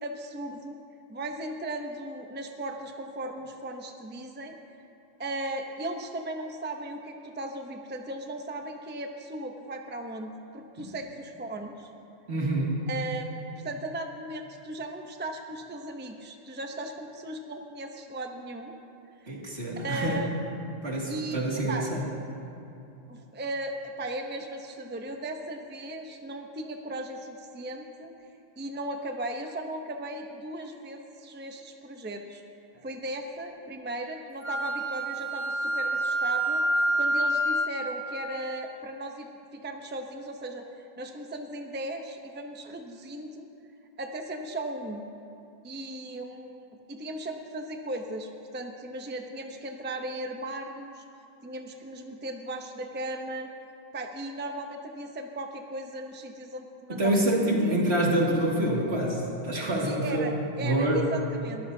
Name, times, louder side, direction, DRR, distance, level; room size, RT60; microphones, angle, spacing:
voice 1, 0.0-0.8 1.1-4.6 5.2-11.9 12.9-18.7 19.2-19.3 19.8-20.4 21.1-21.9 23.1-28.1 28.6-32.4 32.8-40.7 41.0-43.5 44.0-45.0 45.6-51.0 51.4-53.5 53.9-57.7 59.8-61.7, right 1 dB, 10° right, 4 dB, 0.6 m, -37 dB
voice 2, 12.3-12.9 19.3-20.2 20.8-22.0 56.9-60.2 60.6-61.0, right 1 dB, 70° right, -4 dB, 2.6 m, -26 dB
Wind instrument woodwind instrument, 34.4-37.8, right 1 dB, 10° left, 1.5 m, -27 dB
22.0 x 14.0 x 2.7 m, 2.8 s
omnidirectional pair, 1.1 m